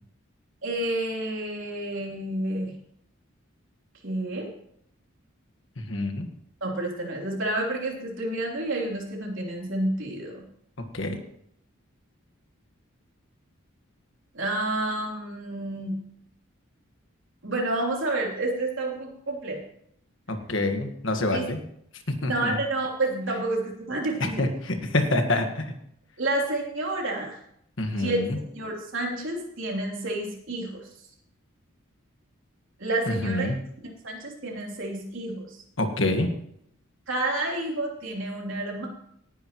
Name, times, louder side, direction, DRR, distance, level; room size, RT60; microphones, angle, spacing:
voice 1, 0.6-2.7 4.0-4.5 6.6-10.4 14.3-16.0 17.4-19.6 21.3-21.5 22.2-24.5 26.2-27.4 27.9-28.2 28.5-30.8 32.8-33.5 34.0-35.4 37.1-38.9, right 2 dB, 65° right, -1 dB, 3.5 m, -29 dB
voice 2, 5.8-6.3 10.9-11.2 20.3-21.6 22.2-22.5 24.2-25.7 27.8-28.4 33.1-33.6 35.8-36.3, left 2 dB, 60° left, 5 dB, 1.5 m, -26 dB
18.5 x 10.0 x 3.1 m, 0.71 s
head